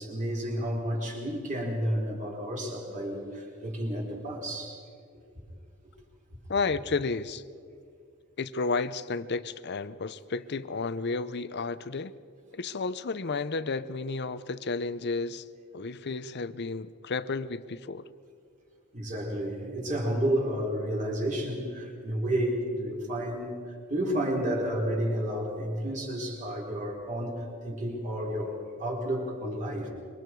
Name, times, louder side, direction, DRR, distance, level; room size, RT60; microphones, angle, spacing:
voice 1, 0.0-4.8 18.9-29.9, equal, 35° right, -1 dB, 4.5 m, -31 dB
voice 2, 6.5-7.4 8.4-12.1 12.5-15.5 15.7-18.1, left 4 dB, 50° left, 15 dB, 0.7 m, -32 dB
26.5 x 24.5 x 4.7 m, 2.3 s
head